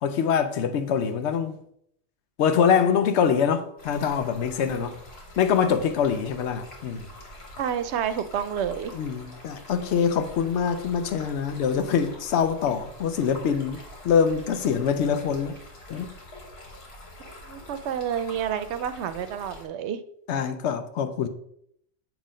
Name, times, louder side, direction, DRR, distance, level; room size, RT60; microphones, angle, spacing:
voice 1, 0.0-1.6 2.4-5.0 5.4-7.1 8.9-15.5 15.9-16.1 20.3-21.3, left 7 dB, 85° left, 0.9 m, -24 dB
Stream, 3.8-19.7, left 1 dB, 65° left, 1.6 m, -45 dB
voice 2, 7.6-8.9 17.5-20.0, right 8 dB, 80° right, 0.9 m, -29 dB
7.4 x 2.9 x 5.0 m
omnidirectional pair, 1.1 m